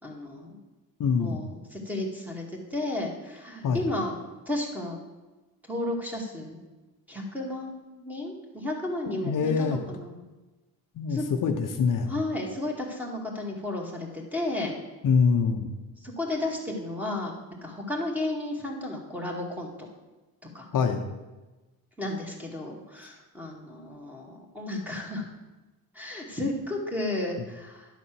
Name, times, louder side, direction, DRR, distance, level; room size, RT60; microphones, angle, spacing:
voice 1, 0.0-0.6 1.2-2.4 2.7-4.2 4.5-5.0 5.7-6.6 7.1-10.2 11.1-11.2 12.1-14.7 16.0-17.3 17.6-19.7 20.5-20.7 22.0-25.2 25.9-27.9, left 1 dB, 5° right, -1 dB, 2.0 m, -33 dB
voice 2, 1.0-1.4 3.6-3.8 9.1-9.8 11.0-12.1 15.0-15.7 20.7-21.0, left 5 dB, 55° left, 4 dB, 0.9 m, -24 dB
11.0 x 4.1 x 7.6 m, 1.1 s
cardioid pair, 125°, 37 cm